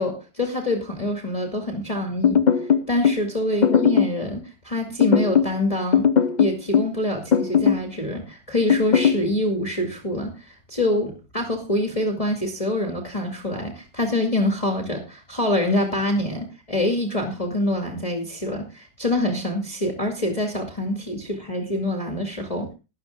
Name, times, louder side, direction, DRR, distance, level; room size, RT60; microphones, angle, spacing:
voice 1, 0.0-6.1 6.4-22.7, left 1 dB, 20° left, 3 dB, 2.3 m, -25 dB
sound 1, 2.2-3.2 3.6-4.2 5.0-5.6 5.9-7.0 7.3-7.9 8.7-9.2, left 7 dB, 45° left, 0.6 m, -18 dB
12.5 x 11.5 x 3.6 m, 0.29 s
omnidirectional pair, 1.8 m